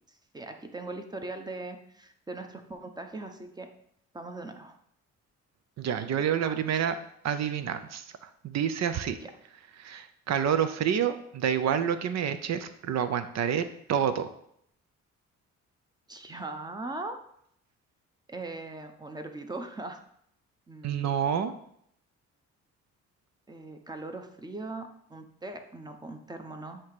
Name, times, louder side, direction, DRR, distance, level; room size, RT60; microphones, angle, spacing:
voice 1, 0.3-3.7 4.1-4.7 6.2-6.9 9.1-9.3 16.1-17.2 18.3-20.0 20.7-21.1 23.5-26.8, right 2 dB, 15° right, 6 dB, 0.8 m, -40 dB
voice 2, 5.8-6.9 7.2-8.0 8.4-9.2 9.8-14.3 20.8-21.5, right 8 dB, 60° right, 11 dB, 0.7 m, -28 dB
7.7 x 2.9 x 4.8 m, 0.69 s
cardioid pair, 90°, 30 cm